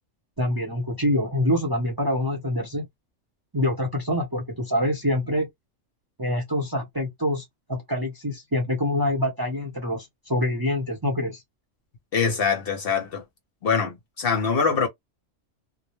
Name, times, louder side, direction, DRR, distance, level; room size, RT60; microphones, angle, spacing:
voice 1, 0.4-2.8 3.5-5.5 6.2-7.4 7.7-11.4, left 1 dB, 20° right, 0.7 m, -25 dB
voice 2, 12.1-13.2 13.6-14.9, left 5 dB, 55° left, 0.8 m, -23 dB
2.3 x 2.0 x 3.0 m
omnidirectional pair, 1.3 m